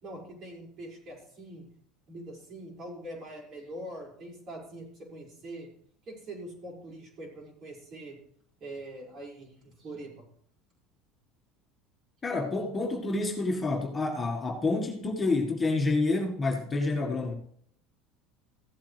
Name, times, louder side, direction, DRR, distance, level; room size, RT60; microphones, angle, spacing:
voice 1, 0.0-1.7 2.1-5.7 6.0-8.2 8.6-10.2, right 1 dB, 45° right, 5.5 m, -43 dB
voice 2, 12.2-17.3, left 3 dB, 20° left, 1.6 m, -28 dB
15.0 x 8.1 x 3.3 m
supercardioid pair, 100°, 0 cm